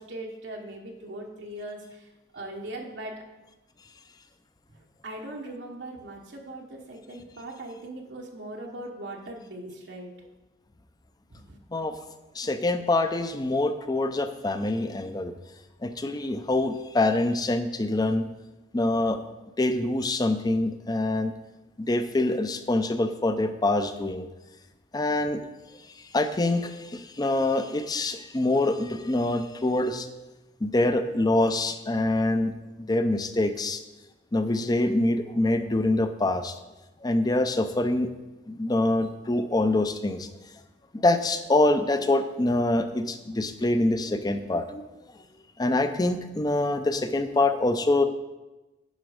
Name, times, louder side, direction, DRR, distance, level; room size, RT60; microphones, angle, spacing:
voice 1, 0.0-3.1 4.7-10.1 11.3-11.6, right 1 dB, 80° right, 0 dB, 1.2 m, -40 dB
voice 2, 12.3-15.3 15.8-18.3 18.7-19.2 19.6-21.3 21.8-24.3 24.9-25.4 26.1-30.1 30.6-32.5 32.8-33.8 34.3-36.5 37.0-38.1 38.5-40.3 40.9-44.8 45.6-48.1, left 2 dB, 20° left, 10 dB, 0.5 m, -25 dB
10.5 x 5.1 x 5.0 m, 1.1 s
head